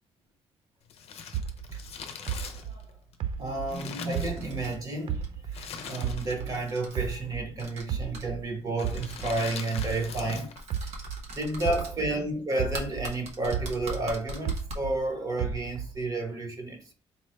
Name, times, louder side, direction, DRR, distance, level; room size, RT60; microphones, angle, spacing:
Crumpling crinkling, 0.9-4.9 5.5-6.5 6.8-6.9 7.7-8.1 8.7-10.6 10.9-11.0, left 7 dB, 70° left, 0.6 m, -42 dB
sound 1, 1.3-4.7 5.1-7.5 7.9-12.2 12.6-15.0 15.4-16.1, right 8 dB, 55° right, 0.4 m, -34 dB
voice 1, 2.3-2.8 3.4-10.5 10.8-10.9 11.3-16.9, right 2 dB, 35° right, 1.0 m, -31 dB
sound 2, 4.2-4.8 5.1-5.3 5.8-5.9 6.2-6.9 7.6-7.8 8.1-8.2 8.9-9.6 10.6-11.9 12.7-14.8, right 1 dB, 80° right, 0.9 m, -40 dB
4.2 x 2.2 x 3.1 m
cardioid pair, 115°, 11 cm